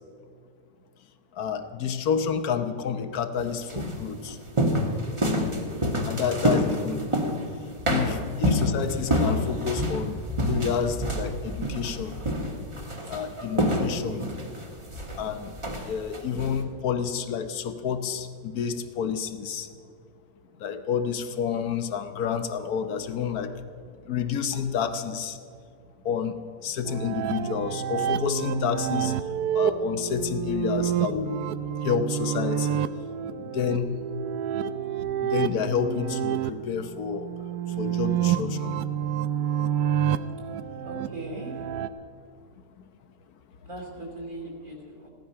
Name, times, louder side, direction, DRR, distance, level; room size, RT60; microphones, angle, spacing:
voice 1, 1.4-4.4 6.1-7.0 7.9-10.2 10.5-12.1 13.1-14.2 15.2-15.5 15.8-19.7 20.6-23.5 24.1-25.4 26.0-26.3 26.6-29.1 29.5-31.4 31.8-32.8 33.5-34.0 35.2-37.3 37.8-38.7, left 7 dB, 65° left, 9 dB, 1.3 m, -29 dB
sound 1, 3.4-7.5 7.9-16.6, equal, 20° right, 1.2 m, -27 dB
sound 2, 26.9-41.9, right 9 dB, 75° right, 1.0 m, -28 dB
voice 2, 40.8-41.7 43.6-45.1, right 1 dB, 50° right, 0 dB, 3.2 m, -39 dB
16.0 x 12.0 x 5.7 m, 2.3 s
omnidirectional pair, 1.8 m